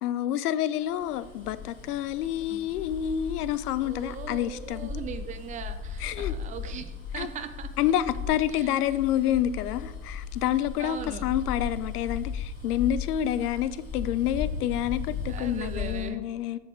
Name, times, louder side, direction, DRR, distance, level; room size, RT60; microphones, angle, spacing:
voice 1, 0.0-4.9 6.0-6.3 7.2-7.3 7.8-16.6, left 11 dB, 85° left, 15 dB, 0.5 m, -28 dB
Bus, 0.9-16.1, left 6 dB, 20° left, 2.4 m, -37 dB
voice 2, 3.8-7.7 8.5-8.7 10.8-11.3 15.3-16.2, right 7 dB, 15° right, 9 dB, 0.4 m, -39 dB
7.9 x 4.1 x 4.4 m, 1.1 s
hypercardioid pair, 105°, 45 cm